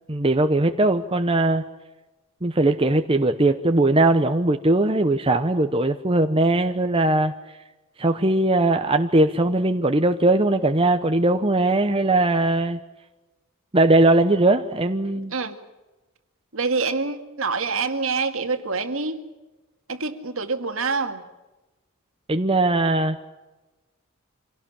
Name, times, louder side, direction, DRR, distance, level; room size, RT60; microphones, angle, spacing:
voice 1, 0.1-1.6 2.4-7.3 8.0-12.8 13.7-15.3 22.3-23.2, right 2 dB, 25° right, 6 dB, 0.9 m, -20 dB
voice 2, 16.5-19.2 19.9-21.2, right 4 dB, 65° right, 7 dB, 2.1 m, -26 dB
26.0 x 17.5 x 8.7 m, 1.1 s
head